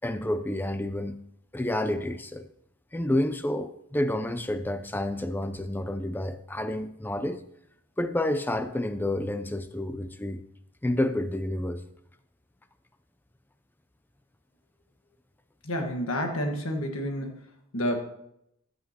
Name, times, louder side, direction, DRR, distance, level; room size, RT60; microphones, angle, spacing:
voice 1, 0.0-1.2 1.5-2.5 2.9-7.4 8.0-10.4 10.8-11.8, left 1 dB, 10° left, 0.4 m, -29 dB
voice 2, 15.6-17.3 17.7-18.0, equal, 80° left, 1.5 m, -29 dB
14.0 x 7.8 x 2.9 m
head